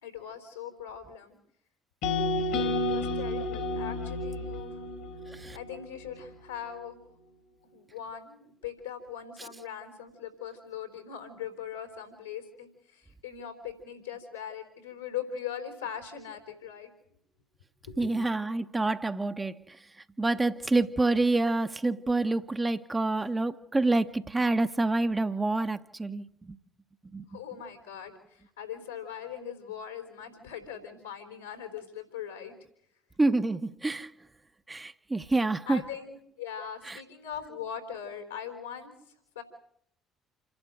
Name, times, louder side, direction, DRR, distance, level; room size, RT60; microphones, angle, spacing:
voice 1, 0.0-1.4 2.5-4.8 5.5-7.0 7.7-16.9 17.8-18.1 27.3-32.6 35.7-38.9 39.3-39.4, left 8 dB, 85° left, 3.9 m, -40 dB
sound 1, 2.0-6.2, left 2 dB, 65° left, 2.5 m, -31 dB
voice 2, 5.3-5.6 9.4-9.5 18.0-26.6 27.1-27.3 33.2-34.1 34.7-35.8 36.8-37.0, right 2 dB, 20° right, 1.1 m, -28 dB
28.0 x 11.5 x 9.2 m
figure-of-eight pair, 50°, 0 cm